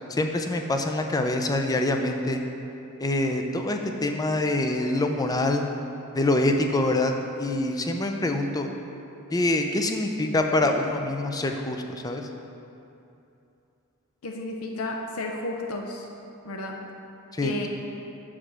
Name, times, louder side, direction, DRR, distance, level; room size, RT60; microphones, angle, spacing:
voice 1, 0.1-2.4 3.0-5.6 6.1-7.1 7.4-8.7 9.3-12.2 17.3-17.6, left 2 dB, 15° left, 4 dB, 0.4 m, -25 dB
voice 2, 14.2-16.1 16.4-16.8 17.4-17.7, left 2 dB, 75° left, 1 dB, 0.6 m, -32 dB
5.6 x 5.0 x 6.1 m, 2.8 s
head